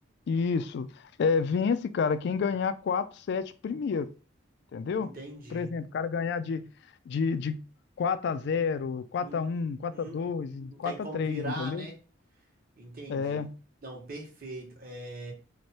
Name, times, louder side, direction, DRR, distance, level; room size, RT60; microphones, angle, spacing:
voice 1, 0.3-0.9 1.2-4.1 4.7-5.1 5.5-6.7 7.1-7.6 8.0-11.9 13.1-13.6, left 5 dB, 60° left, 0.3 m, -29 dB
voice 2, 4.9-5.7 9.2-9.4 9.9-10.2 10.7-11.9 12.8-13.4 13.8-15.3, right 1 dB, 50° right, 1.0 m, -40 dB
3.1 x 2.2 x 4.0 m
head